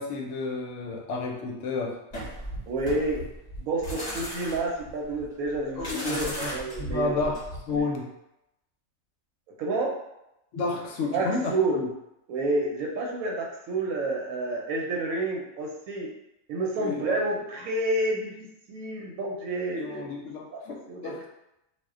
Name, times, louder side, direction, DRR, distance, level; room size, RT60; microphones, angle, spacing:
voice 1, 0.0-2.0 5.8-6.5 6.8-7.4 7.7-8.1 10.5-11.9 16.8-17.2 19.8-21.3, left 3 dB, 70° left, 1 dB, 0.9 m, -31 dB
sound 1, 2.1-7.8, equal, 35° left, 0.7 m, -36 dB
voice 2, 2.7-3.2 3.6-7.2 7.7-7.8 9.6-9.9 11.1-11.8 12.3-16.1 16.5-20.1 20.5-20.6 20.9-21.3, right 2 dB, 90° right, 0 dB, 1.0 m, -29 dB
2.4 x 2.1 x 3.5 m, 0.87 s
omnidirectional pair, 1.4 m